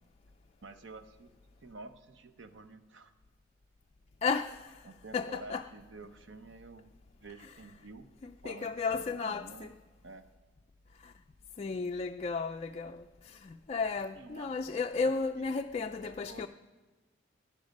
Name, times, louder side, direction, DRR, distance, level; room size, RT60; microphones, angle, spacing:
voice 1, 0.6-1.3 1.6-3.1 4.8-6.9 7.2-8.1 8.4-9.7 10.0-10.2 14.1-14.7 15.0-15.1 15.4-15.5 16.0-16.5, right 3 dB, 65° right, 0.8 m, -50 dB
voice 2, 4.2-4.8 5.1-5.7 7.4-7.5 8.2-9.7 11.0-11.1 11.6-16.5, left 4 dB, 35° left, 0.3 m, -34 dB
15.5 x 10.5 x 5.3 m
head